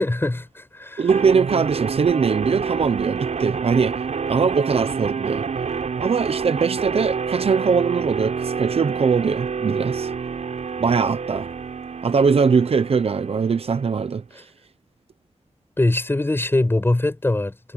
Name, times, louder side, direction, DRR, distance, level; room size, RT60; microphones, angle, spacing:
voice 1, 0.0-1.1 15.8-17.7, left 2 dB, 20° left, 7.4 m, -22 dB
voice 2, 1.0-4.0 4.3-5.4 6.0-10.1 10.8-11.5 12.0-14.4, right 5 dB, 60° right, 0.8 m, -21 dB
sound 1, 1.1-14.1, right 5 dB, 75° right, 5.6 m, -28 dB
wide cardioid pair, 135°, 12 cm